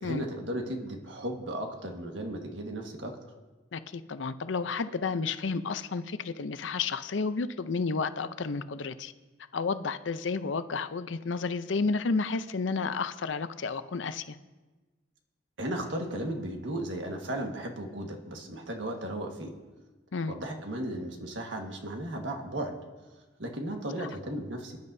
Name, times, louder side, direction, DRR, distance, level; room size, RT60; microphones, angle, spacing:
voice 1, 0.0-3.2 15.6-19.5 20.3-22.7 23.4-24.8, right 1 dB, 80° right, 2 dB, 1.6 m, -35 dB
voice 2, 3.7-9.1 9.5-14.4 20.1-20.3 24.0-24.1, left 4 dB, 85° left, 12 dB, 0.6 m, -31 dB
26.0 x 10.5 x 2.7 m, 1.2 s
head